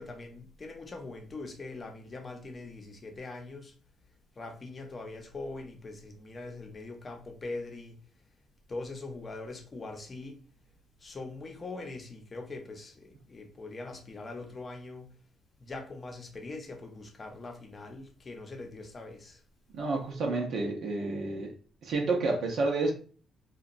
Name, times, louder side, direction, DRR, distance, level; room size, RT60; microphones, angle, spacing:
voice 1, 0.0-3.7 4.3-8.0 8.7-10.4 11.0-15.1 15.6-19.4, left 3 dB, 35° left, 0.7 m, -42 dB
voice 2, 19.7-21.5 21.8-22.9, right 3 dB, 70° right, 0.6 m, -29 dB
2.8 x 2.2 x 2.5 m
cardioid pair, 90°, 0 cm